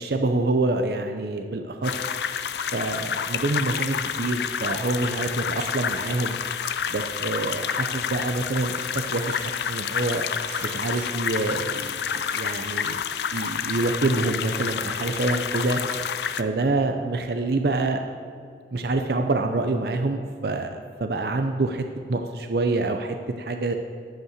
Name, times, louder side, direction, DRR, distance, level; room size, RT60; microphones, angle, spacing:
voice 1, 0.0-2.0 2.7-6.4 6.9-10.2 10.6-13.0 13.3-15.8 16.4-18.0 18.7-23.8, right 2 dB, 60° right, 6 dB, 0.6 m, -26 dB
sound 1, 1.8-16.4, left 7 dB, 65° left, 0.4 m, -29 dB
Writing, 2.6-2.7 3.8-4.8 5.6-5.7 6.6-6.8 8.4-9.7 9.9-12.4 13.3-13.8 14.4-14.8 15.4-16.0, right 2 dB, 40° right, 2.9 m, -45 dB
13.5 x 5.5 x 6.7 m, 2.3 s
head